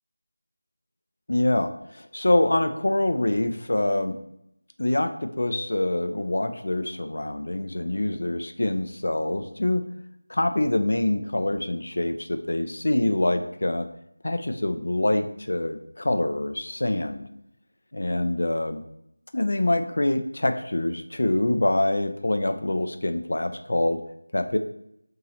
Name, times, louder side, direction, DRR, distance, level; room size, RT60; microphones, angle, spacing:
voice 1, 1.3-4.1 4.8-9.8 10.3-13.9 14.2-17.2 17.9-18.8 19.3-24.0 24.3-24.6, left 1 dB, 60° left, 7 dB, 0.5 m, -25 dB
2.9 x 2.8 x 4.0 m, 0.76 s
figure-of-eight pair, 170°, 0 cm